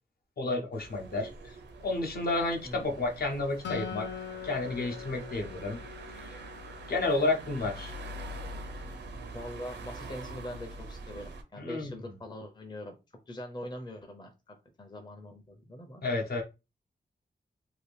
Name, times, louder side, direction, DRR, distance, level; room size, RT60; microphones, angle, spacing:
voice 1, 0.4-1.3 1.8-4.1 4.4-5.8 6.2-6.4 6.9-7.9 11.6-11.9 16.0-16.4, left 2 dB, 60° left, 2 dB, 0.8 m, -31 dB
sound 1, 0.7-11.4, right 1 dB, 80° right, 0.6 m, -44 dB
voice 2, 2.6-3.0 9.2-12.9 13.3-16.0, left 1 dB, 25° left, 3 dB, 0.6 m, -43 dB
Acoustic guitar, 3.6-7.1, left 7 dB, 90° left, 0.6 m, -42 dB
2.8 x 2.5 x 3.3 m, 0.27 s
wide cardioid pair, 145°, 18 cm